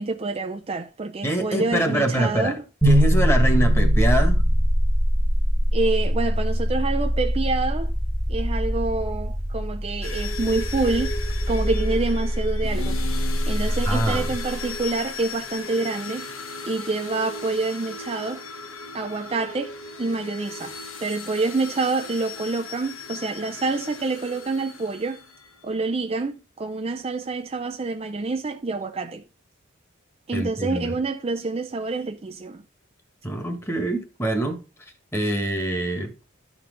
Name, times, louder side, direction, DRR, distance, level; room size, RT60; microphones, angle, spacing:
voice 1, 0.0-2.6 5.7-7.9 8.3-11.1 11.5-13.0 13.5-16.3 16.6-18.4 18.9-20.7 21.0-25.2 25.6-29.2 30.3-32.6, right 3 dB, 30° right, 0.5 m, -27 dB
voice 2, 1.2-2.6 2.8-4.4 13.9-14.3 30.3-30.9 33.2-34.6 35.1-36.1, right 1 dB, 10° left, 1.6 m, -24 dB
sound 1, 2.8-14.9, equal, 10° right, 1.2 m, -23 dB
sound 2, 10.0-25.6, left 3 dB, 85° left, 1.3 m, -37 dB
12.0 x 4.3 x 5.1 m
head